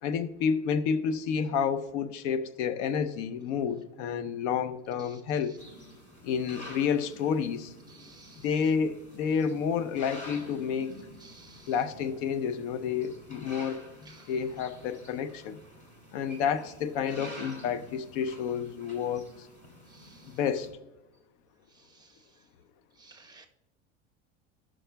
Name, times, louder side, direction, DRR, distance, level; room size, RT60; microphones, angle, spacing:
voice 1, 0.0-5.6 6.2-7.7 8.4-11.0 11.7-15.6 16.1-19.5 20.3-20.7, left 7 dB, 75° left, 0.7 m, -30 dB
sound 1, 5.6-20.7, equal, 20° left, 2.7 m, -49 dB
voice 2, 8.0-8.4 11.2-11.7 14.1-14.3 19.9-20.2 22.0-22.1 23.0-23.5, right 3 dB, 10° right, 0.9 m, -54 dB
15.0 x 6.2 x 2.2 m
supercardioid pair, 110°, 34 cm